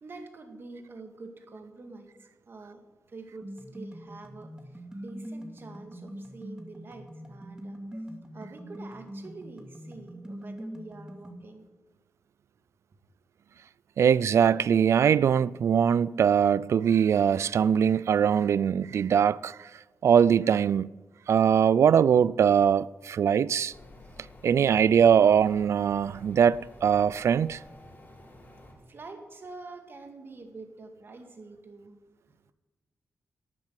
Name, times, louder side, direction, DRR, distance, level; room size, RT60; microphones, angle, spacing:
voice 1, 0.0-11.7 28.9-32.0 32.3-32.5, right 3 dB, 50° right, 2.0 m, -46 dB
sound 1, 3.4-11.4, equal, 15° right, 2.1 m, -43 dB
voice 2, 14.0-19.7 20.0-20.9 21.3-23.7 24.4-27.6, right 8 dB, 70° right, 0.3 m, -22 dB
sound 2, 23.7-28.7, left 1 dB, 40° left, 3.9 m, -50 dB
12.5 x 8.8 x 7.5 m
cardioid pair, 80°, 5 cm